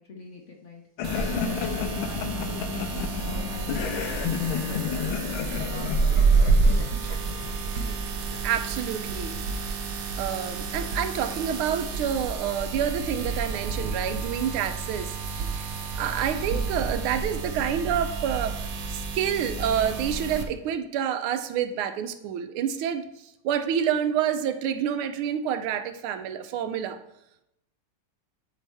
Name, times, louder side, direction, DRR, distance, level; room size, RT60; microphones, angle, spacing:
voice 1, 0.0-5.1 5.4-5.9 6.3-6.8, left 3 dB, 60° left, 1 dB, 0.7 m, -40 dB
sound 1, 1.0-8.6, left 8 dB, 80° left, 1.4 m, -32 dB
sound 2, 1.0-20.4, right 4 dB, 65° right, 1.3 m, -29 dB
voice 2, 8.4-9.4 10.2-15.7 16.0-18.6 18.9-27.0, right 8 dB, 90° right, 9 dB, 1.5 m, -28 dB
10.0 x 4.1 x 3.5 m, 0.84 s
omnidirectional pair, 2.3 m